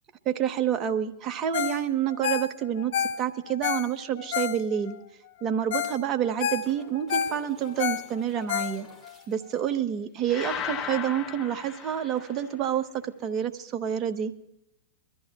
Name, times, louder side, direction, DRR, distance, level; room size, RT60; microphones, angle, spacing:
voice 1, 0.2-5.0 5.4-8.9 9.3-14.3, right 9 dB, 35° right, 9 dB, 1.1 m, -28 dB
Ringtone, 1.5-5.0 5.4-5.5 5.7-6.0 6.3-9.1 9.6-9.7, left 9 dB, 60° left, 0.7 m, -30 dB
sound 1, 4.8-4.9 5.9-9.6 12.2-12.3, equal, 15° left, 4.4 m, -54 dB
sound 2, 10.3-12.6, left 8 dB, 35° left, 1.1 m, -36 dB
23.5 x 14.0 x 2.4 m, 0.84 s
hypercardioid pair, 105°, 0 cm